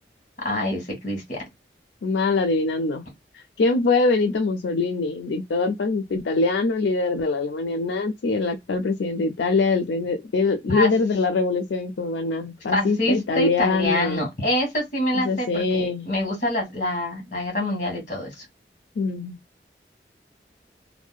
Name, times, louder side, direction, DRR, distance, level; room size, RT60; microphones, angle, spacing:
voice 1, 0.4-1.4 10.7-10.9 12.7-18.4, left 1 dB, 45° left, 1.3 m, -26 dB
voice 2, 2.0-3.0 3.3-14.3 15.1-16.1 19.0-19.4, left 3 dB, 90° left, 0.4 m, -23 dB
2.7 x 2.1 x 2.3 m
head